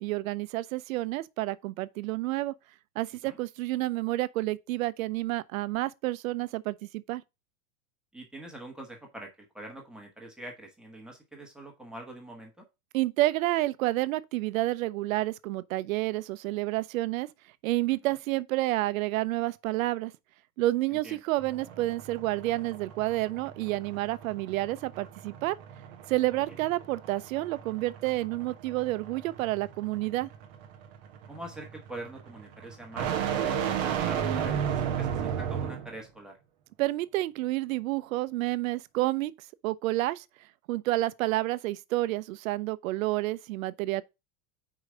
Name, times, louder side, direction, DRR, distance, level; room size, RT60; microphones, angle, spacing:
voice 1, 0.0-2.5 3.0-7.2 12.9-17.3 17.6-20.1 20.6-25.6 26.1-30.3 36.8-39.3 39.6-40.2 40.7-44.0, right 17 dB, 70° right, 0.7 m, -29 dB
voice 2, 8.1-12.6 20.9-21.2 26.3-26.6 31.3-36.4, right 1 dB, ahead, 1.1 m, -44 dB
sound 1, 21.4-36.0, right 8 dB, 15° right, 0.3 m, -34 dB
4.9 x 4.8 x 6.1 m
supercardioid pair, 175°, 42 cm